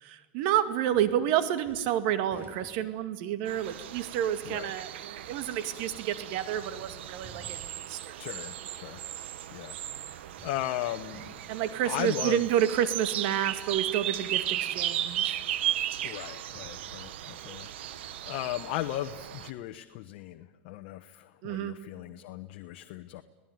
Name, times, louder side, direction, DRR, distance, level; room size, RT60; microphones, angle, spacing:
voice 1, 0.0-8.2 11.5-15.4 21.4-21.7, right 11 dB, 60° right, 11 dB, 2.1 m, -29 dB
sound 1, 0.9-1.3 1.6-3.2 3.8-3.9 5.8-5.9 7.1-8.0 10.4-10.8 11.1-11.8 14.8-14.9 16.3-17.2 17.7-17.8, right 2 dB, 35° right, 5.9 m, -52 dB
sound 2, 3.5-19.5, right 12 dB, 80° right, 1.3 m, -36 dB
voice 2, 8.2-9.0 9.5-9.8 10.0-11.2 11.8-12.4 16.0-23.2, left 14 dB, 60° left, 7 dB, 1.1 m, -37 dB
27.0 x 18.0 x 9.5 m, 1.2 s
supercardioid pair, 120°, 6 cm